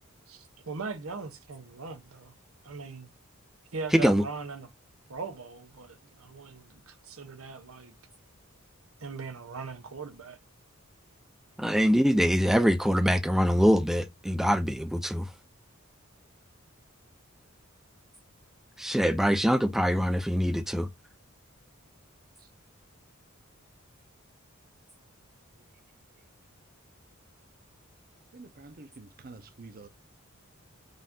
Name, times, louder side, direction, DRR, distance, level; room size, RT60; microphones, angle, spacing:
voice 1, 0.3-2.3 2.6-3.1 3.7-4.7 5.1-7.9 9.0-10.4, right 4 dB, 80° right, 0.9 m, -40 dB
voice 2, 3.9-4.2 11.6-15.2 18.8-20.9, equal, ahead, 0.3 m, -24 dB
voice 3, 28.3-29.9, right 3 dB, 45° right, 0.7 m, -48 dB
5.3 x 2.6 x 3.6 m
head